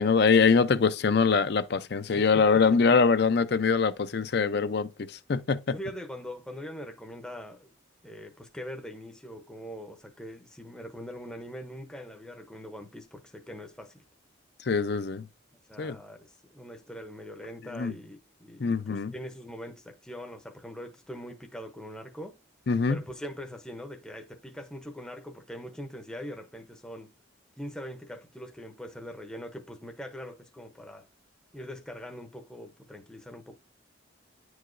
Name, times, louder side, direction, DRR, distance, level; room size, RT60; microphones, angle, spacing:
voice 1, 0.0-5.8 14.7-15.3 15.8-16.0 17.7-17.9 18.6-19.1 22.7-23.0, left 5 dB, 55° left, 0.5 m, -23 dB
voice 2, 5.7-7.7 8.0-14.0 15.7-22.4 22.9-27.1 27.6-31.1 31.5-33.6, equal, 5° left, 0.6 m, -42 dB
10.0 x 4.8 x 2.5 m
head